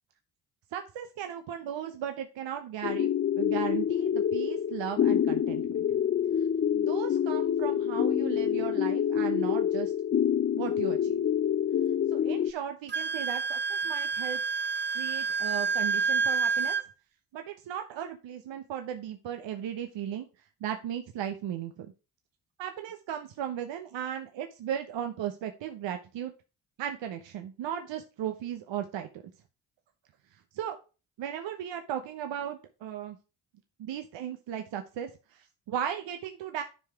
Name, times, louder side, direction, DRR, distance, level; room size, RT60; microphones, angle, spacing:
voice 1, 0.7-3.1 3.4-5.6 6.7-9.9 10.5-11.2 12.1-14.4 14.9-16.8 17.3-20.3 20.6-21.9 22.6-26.3 26.8-29.1 30.5-30.8 31.2-33.2 33.8-36.6, right 9 dB, 65° right, 6 dB, 0.9 m, -36 dB
sound 1, 2.8-12.5, left 9 dB, 30° left, 0.4 m, -27 dB
Wind instrument woodwind instrument, 12.9-16.8, right 5 dB, 25° right, 0.6 m, -29 dB
10.5 x 4.8 x 3.5 m, 0.32 s
hypercardioid pair, 45°, 48 cm